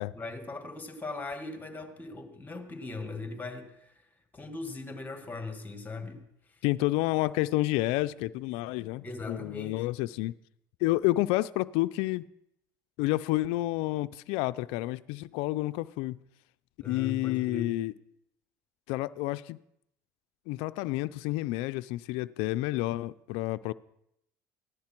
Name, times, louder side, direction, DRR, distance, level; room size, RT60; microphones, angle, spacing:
voice 1, 0.1-6.2 6.5-6.6 9.0-9.8 16.8-17.7, left 3 dB, 15° left, 1.9 m, -39 dB
voice 2, 6.6-10.3 10.8-12.3 13.0-16.2 16.8-17.9 18.9-19.6 20.5-23.7, left 18 dB, 70° left, 0.4 m, -29 dB
14.5 x 10.5 x 4.5 m
supercardioid pair, 90°, 10 cm